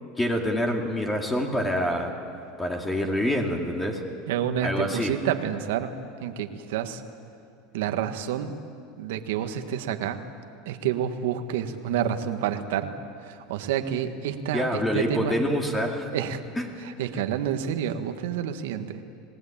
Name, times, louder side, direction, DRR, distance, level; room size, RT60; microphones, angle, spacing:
voice 1, 0.2-2.1 2.6-4.0 4.6-5.1 14.5-16.1 16.6-16.8, equal, 10° left, 2 dB, 2.6 m, -26 dB
voice 2, 4.3-5.9 6.2-7.0 7.7-8.6 9.0-10.2 10.7-12.9 13.2-15.3 16.1-16.4 16.8-19.0, right 9 dB, 80° right, 7 dB, 1.7 m, -29 dB
28.0 x 19.0 x 8.9 m, 2.4 s
supercardioid pair, 125°, 0 cm